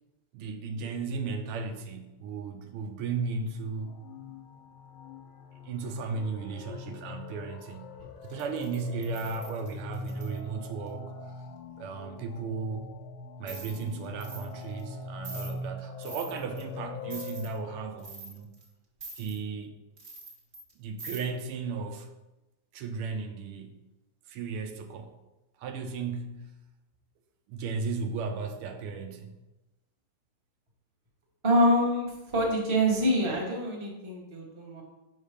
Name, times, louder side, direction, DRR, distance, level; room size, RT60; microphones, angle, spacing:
voice 1, 0.3-4.0 5.6-7.9 8.2-11.4 11.8-12.9 13.4-18.5 19.2-19.8 20.8-22.1 22.7-23.8 24.3-25.2 25.6-26.6 27.5-29.4, right 4 dB, 80° right, 6 dB, 1.5 m, -35 dB
sound 1, 3.2-17.9, left 3 dB, 75° left, 1.4 m, -42 dB
sound 2, 8.3-10.4 13.5-13.8 14.2-14.5 14.8-14.9 15.2-15.5 16.0-16.6 17.1-17.5 18.0-18.7 19.0-19.4 20.0-20.7 21.0-21.2, right 3 dB, 35° right, 1.2 m, -44 dB
voice 2, 31.4-34.8, equal, 20° right, -2 dB, 0.9 m, -26 dB
5.5 x 4.5 x 4.9 m, 1.0 s
omnidirectional pair, 2.4 m